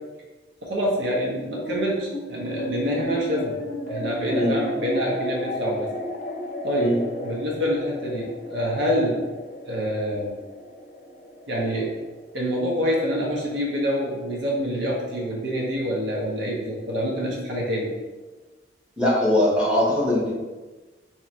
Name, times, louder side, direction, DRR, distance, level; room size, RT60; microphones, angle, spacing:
voice 1, 0.6-3.6 3.9-5.9 6.6-9.2 9.7-10.3 11.5-11.9 12.3-17.9, equal, 90° right, -3 dB, 0.8 m, -26 dB
sound 1, 1.6-14.2, left 1 dB, 45° left, 0.6 m, -35 dB
voice 2, 19.0-20.3, left 1 dB, 5° right, -7 dB, 0.9 m, -21 dB
2.9 x 2.5 x 4.3 m, 1.2 s
head